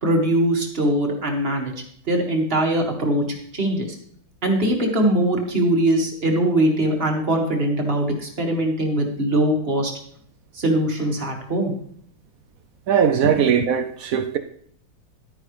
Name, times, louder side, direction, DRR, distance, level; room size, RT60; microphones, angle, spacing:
voice 1, 0.0-1.7 2.1-3.2 3.5-3.9 4.4-9.9 10.5-11.8, right 1 dB, 30° right, 2.0 m, -21 dB
voice 2, 12.9-14.4, right 8 dB, 85° right, 0.7 m, -19 dB
12.0 x 10.0 x 3.3 m
omnidirectional pair, 2.1 m